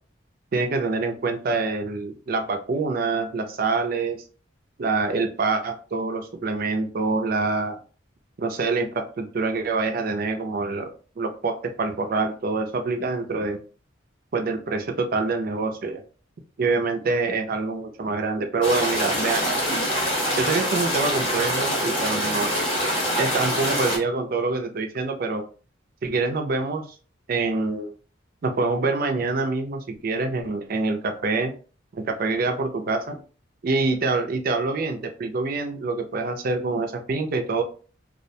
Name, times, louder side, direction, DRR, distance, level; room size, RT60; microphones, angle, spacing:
voice 1, 0.5-4.2 4.8-7.8 8.4-10.9 11.2-13.6 14.3-16.0 16.6-19.4 20.4-22.5 23.2-25.4 26.0-26.9 27.3-27.9 28.4-31.5 31.9-33.2 33.6-37.6, right 3 dB, 45° right, 6 dB, 0.4 m, -25 dB
sound 1, 18.6-24.0, equal, 25° left, 0.7 m, -25 dB
2.3 x 2.1 x 2.6 m, 0.39 s
head